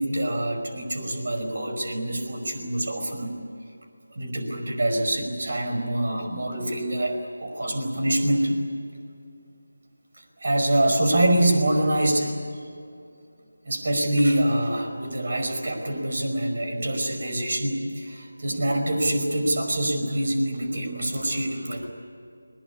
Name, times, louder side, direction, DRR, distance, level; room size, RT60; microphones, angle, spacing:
voice 1, 0.0-3.3 4.1-8.7 10.4-12.4 13.6-21.9, right 1 dB, 55° right, 5 dB, 5.1 m, -25 dB
21.5 x 20.5 x 9.8 m, 2.5 s
figure-of-eight pair, 160°, 0 cm